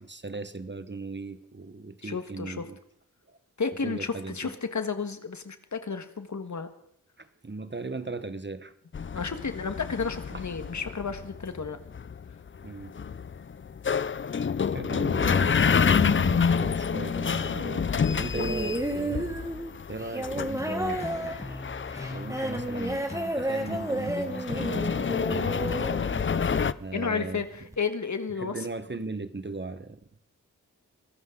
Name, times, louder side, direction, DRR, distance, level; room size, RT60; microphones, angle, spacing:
voice 1, 0.0-2.8 3.3-3.4 3.8-4.5 7.2-8.7 10.3-10.4 12.6-12.9 14.7-19.4 19.9-21.7 22.1-25.5 26.7-27.4 28.4-30.0, right 3 dB, 35° right, 11 dB, 1.3 m, -38 dB
voice 2, 2.0-2.6 3.6-6.7 9.1-11.8 15.4-15.6 26.3-26.5 26.9-28.6, left 5 dB, 60° left, 8 dB, 1.7 m, -32 dB
sound 1, 8.9-26.7, left 6 dB, 40° left, 0.5 m, -29 dB
sound 2, 18.3-26.7 27.7-27.8, right 1 dB, 10° right, 2.6 m, -32 dB
sound 3, 20.6-27.0, left 2 dB, 20° left, 1.0 m, -41 dB
23.0 x 14.5 x 3.9 m, 0.70 s
cardioid pair, 60°, 32 cm